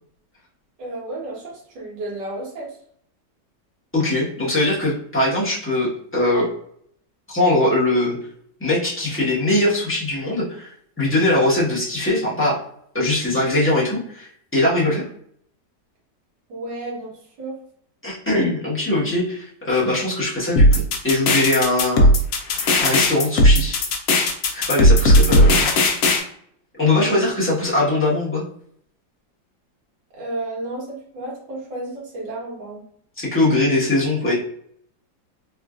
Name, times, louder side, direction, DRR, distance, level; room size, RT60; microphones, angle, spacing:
voice 1, 0.8-2.8 16.5-17.6 27.0-27.3 30.1-32.8, right 2 dB, 80° right, -4 dB, 1.8 m, -32 dB
voice 2, 3.9-6.5 7.3-8.2 8.6-12.6 12.9-15.1 18.0-22.1 22.8-23.8 24.5-25.7 26.8-28.4 33.2-34.3, left 2 dB, 10° left, -8 dB, 0.6 m, -21 dB
sound 1, 20.6-26.2, left 1 dB, 65° left, 0.8 m, -15 dB
3.6 x 2.4 x 2.4 m, 0.66 s
omnidirectional pair, 1.9 m